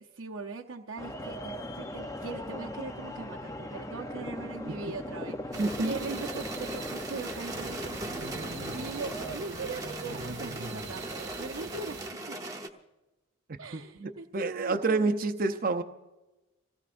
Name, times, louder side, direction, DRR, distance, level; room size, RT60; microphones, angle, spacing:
voice 1, 0.0-8.4 8.7-12.0 12.3-12.4 13.6-15.3, right 4 dB, 85° right, 0 dB, 0.8 m, -41 dB
sound 1, 1.0-9.4, left 1 dB, 15° left, 0.6 m, -40 dB
sound 2, 5.5-12.7, right 1 dB, 15° right, 1.1 m, -39 dB
sound 3, 5.5-12.1, right 3 dB, 65° right, 1.0 m, -43 dB
voice 2, 5.6-6.0 13.7-15.8, right 3 dB, 45° right, 7 dB, 0.6 m, -28 dB
26.0 x 17.5 x 2.6 m, 1.0 s
head